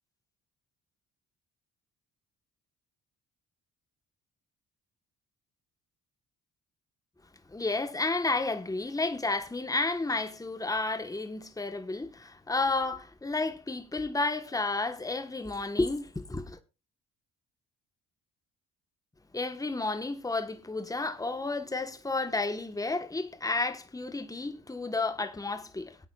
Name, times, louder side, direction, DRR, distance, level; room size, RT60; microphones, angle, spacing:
voice 1, 7.5-16.6 19.3-26.0, left 3 dB, 10° left, 1.3 m, -31 dB
20.5 x 8.7 x 2.4 m
supercardioid pair, 65°, 32 cm